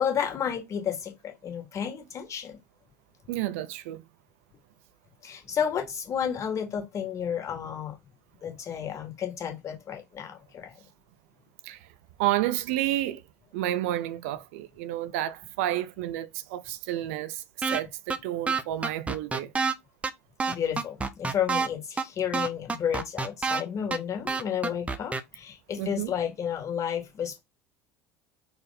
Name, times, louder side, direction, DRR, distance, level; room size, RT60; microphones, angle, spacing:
voice 1, 0.0-2.6 5.2-8.0 8.4-10.7 20.5-27.4, left 8 dB, 40° left, 1.9 m, -31 dB
voice 2, 3.3-4.0 11.6-11.9 12.2-13.2 13.5-19.5 25.8-26.1, right 14 dB, 65° right, 0.4 m, -30 dB
sound 1, 17.6-17.8 18.1-18.2 18.5-19.7 20.0-20.1 20.4-21.7 22.0-22.1 22.3-23.6 23.9-24.0 24.3-25.2, right 4 dB, 15° right, 0.7 m, -27 dB
4.2 x 2.5 x 4.0 m
figure-of-eight pair, 65°, 8 cm